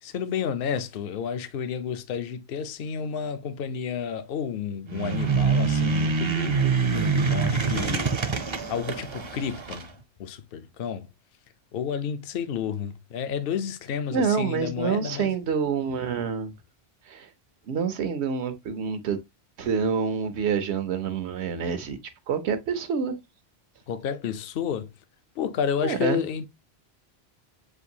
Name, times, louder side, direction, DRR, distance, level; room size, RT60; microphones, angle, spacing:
voice 1, 0.0-8.2 8.7-9.9 10.2-11.1 11.7-15.3 23.9-24.9 25.4-26.5, left 7 dB, 65° left, 0.8 m, -31 dB
sound 1, 4.9-9.9, right 5 dB, 40° right, 0.4 m, -25 dB
voice 2, 14.1-16.5 17.1-17.3 17.7-19.2 19.6-22.0 22.3-23.2 25.8-26.2, right 6 dB, 90° right, 1.0 m, -27 dB
6.1 x 2.6 x 2.7 m
omnidirectional pair, 1.1 m